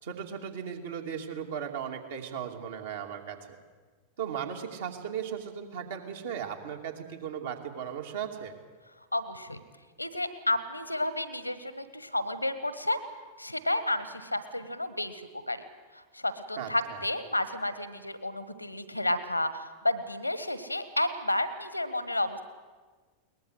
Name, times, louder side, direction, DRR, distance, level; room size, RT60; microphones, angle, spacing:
voice 1, 0.0-3.4 4.2-8.6 16.6-17.0, right 8 dB, 60° right, 3 dB, 2.7 m, -37 dB
voice 2, 9.1-9.6 10.0-13.0 13.4-15.2 15.5-15.6 16.1-22.4, left 1 dB, 85° left, 13 dB, 1.5 m, -31 dB
21.5 x 19.5 x 8.1 m, 1.4 s
figure-of-eight pair, 90°, 0 cm